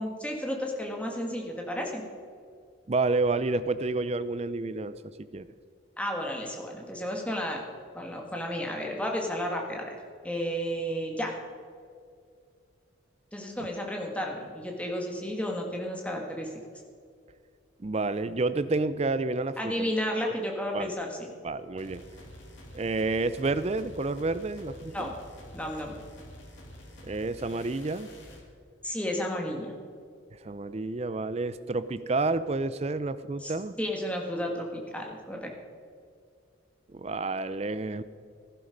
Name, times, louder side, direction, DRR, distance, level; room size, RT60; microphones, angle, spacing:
voice 1, 0.0-2.0 6.0-7.6 7.9-10.0 10.2-11.4 13.3-16.5 19.6-21.3 24.9-25.2 25.5-26.0 28.8-29.7 33.4-35.5, equal, 5° left, 0 dB, 1.7 m, -32 dB
voice 2, 2.9-5.5 17.8-19.9 20.7-20.9 21.4-22.0 22.7-25.1 27.0-28.1 30.4-33.7 36.9-38.0, right 3 dB, 30° right, 14 dB, 0.4 m, -29 dB
sound 1, 21.8-28.5, equal, 70° left, 2.5 m, -48 dB
15.5 x 11.5 x 5.2 m, 2.2 s
head